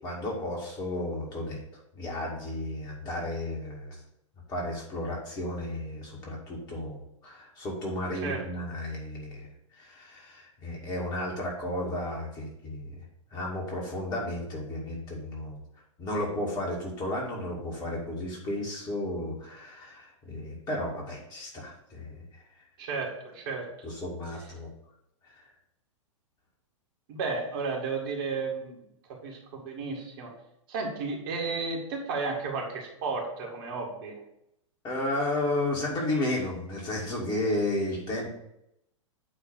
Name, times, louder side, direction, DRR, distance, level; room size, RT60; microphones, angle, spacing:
voice 1, 0.0-1.6 2.0-4.0 4.5-9.5 9.8-13.0 13.3-15.6 16.0-22.2 23.8-24.7 34.8-38.3, left 1 dB, 25° left, -2 dB, 2.1 m, -33 dB
voice 2, 22.8-23.7 27.1-28.8 29.1-30.3 30.7-34.2, right 4 dB, 45° right, -1 dB, 1.9 m, -33 dB
8.9 x 3.2 x 6.1 m, 0.79 s
figure-of-eight pair, 105°, 17 cm